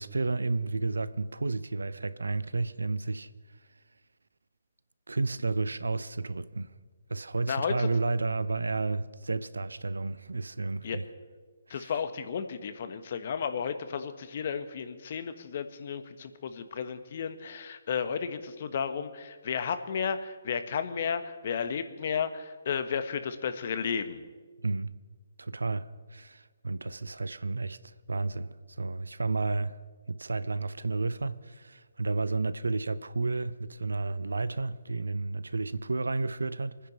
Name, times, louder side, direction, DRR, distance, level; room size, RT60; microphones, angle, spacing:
voice 1, 0.0-3.3 5.1-6.7 7.1-11.0 11.7-11.9 24.6-24.9 25.4-28.5 28.8-29.8 30.1-36.9, right 3 dB, 85° right, 0.7 m, -31 dB
voice 2, 7.5-7.9 10.8-11.0 11.7-24.2, left 6 dB, 50° left, 1.3 m, -33 dB
24.5 x 10.0 x 5.6 m
figure-of-eight pair, 140°, 0 cm